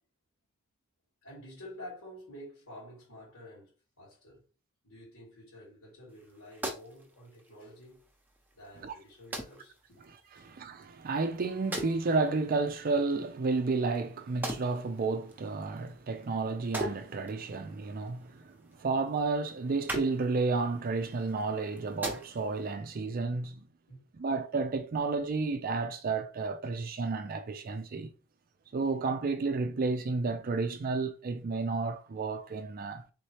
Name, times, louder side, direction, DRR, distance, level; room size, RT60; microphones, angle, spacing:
voice 1, 1.2-4.4 4.8-8.0 8.5-10.0 10.3-10.5 23.9-24.0, left 1 dB, 80° left, 2.5 m, -49 dB
sound 1, 6.1-22.7, right 1 dB, 10° right, 0.8 m, -44 dB
voice 2, 10.3-23.6 24.1-28.1 28.7-33.1, right 3 dB, 40° right, 0.4 m, -31 dB
4.2 x 3.8 x 3.2 m
head